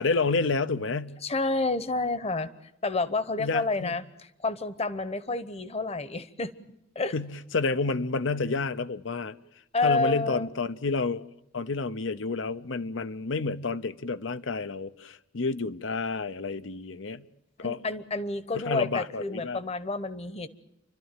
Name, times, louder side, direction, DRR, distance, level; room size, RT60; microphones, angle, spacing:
voice 1, 0.0-1.2 3.4-4.0 7.1-9.4 9.8-11.3 11.5-17.2 17.6-17.8 18.5-19.6, left 3 dB, 85° left, 0.8 m, -29 dB
voice 2, 1.2-2.5 2.8-6.5 6.9-7.1 9.7-10.5 17.6-20.5, left 3 dB, 35° left, 1.0 m, -29 dB
29.5 x 12.5 x 9.1 m
head